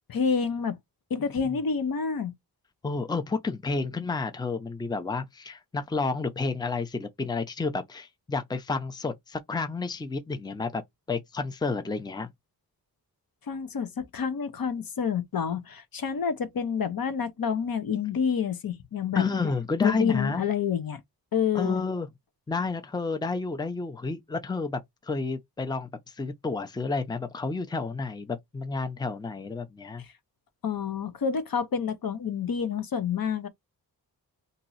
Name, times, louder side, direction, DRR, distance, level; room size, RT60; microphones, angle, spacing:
voice 1, 0.1-0.8 1.1-2.3 13.5-19.2 19.8-21.0 21.3-21.8 30.6-33.5, left 6 dB, 60° left, 0.8 m, -28 dB
voice 2, 2.8-10.8 11.1-12.3 19.1-20.4 21.5-22.1 22.5-30.0, left 4 dB, 10° left, 0.6 m, -30 dB
2.9 x 2.6 x 4.0 m
wide cardioid pair, 90°, 40 cm